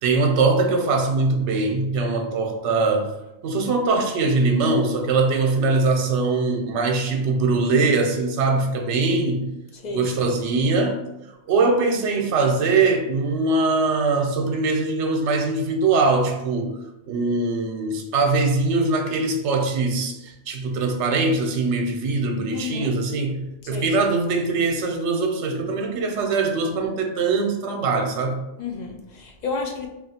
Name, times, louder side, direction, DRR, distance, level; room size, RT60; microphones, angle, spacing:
voice 1, 0.0-3.1 3.4-9.5 9.9-11.0 11.5-16.8 17.0-28.4, right 3 dB, 80° right, 0.9 m, -22 dB
voice 2, 9.7-10.3 22.5-23.0 23.6-23.9 28.6-29.9, left 4 dB, 60° left, 0.4 m, -31 dB
3.0 x 2.4 x 4.1 m
omnidirectional pair, 1.2 m